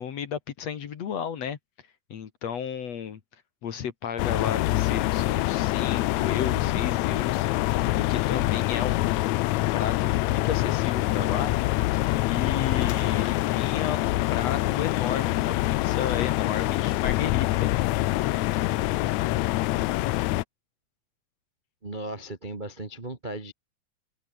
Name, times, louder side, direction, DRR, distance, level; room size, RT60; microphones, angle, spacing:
voice 1, 0.0-1.6 2.1-3.2 3.6-7.5 8.0-9.1 9.7-11.5 12.3-17.7, left 8 dB, 55° left, 2.6 m, -33 dB
sound 1, 4.2-20.4, left 18 dB, 80° left, 1.6 m, -25 dB
voice 2, 21.8-23.5, right 2 dB, 25° right, 1.1 m, -36 dB
omnidirectional pair, 3.9 m